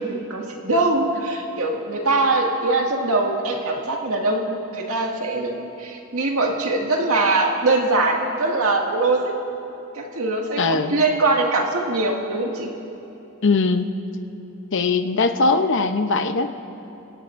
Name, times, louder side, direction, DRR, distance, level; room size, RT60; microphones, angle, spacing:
voice 1, 0.3-9.3 9.9-12.7, right 2 dB, 80° right, 0 dB, 2.0 m, -22 dB
voice 2, 10.6-10.9 13.4-13.9 14.7-16.5, left 3 dB, 60° left, 8 dB, 0.8 m, -20 dB
28.5 x 17.5 x 2.6 m, 2.9 s
head